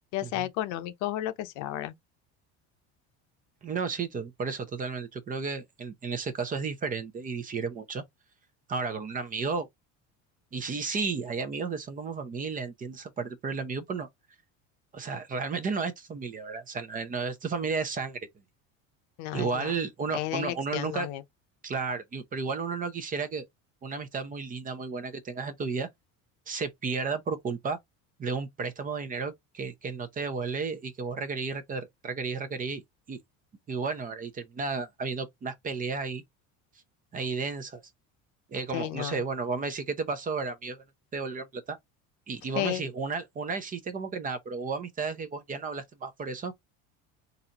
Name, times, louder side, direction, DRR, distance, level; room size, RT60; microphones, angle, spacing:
voice 1, 0.1-1.9 19.2-19.7 20.1-21.2 38.7-39.2 42.5-42.8, left 13 dB, 65° left, 0.7 m, -32 dB
voice 2, 3.6-8.0 8.7-9.7 10.5-14.1 14.9-18.3 19.3-21.1 21.6-23.5 23.8-25.9 26.5-27.8 28.2-32.8 33.1-33.2 33.7-36.2 37.1-37.8 38.5-40.8 41.1-41.8 42.3-46.5, right 4 dB, 25° right, 0.7 m, -33 dB
4.0 x 2.6 x 2.8 m
cardioid pair, 130°, 32 cm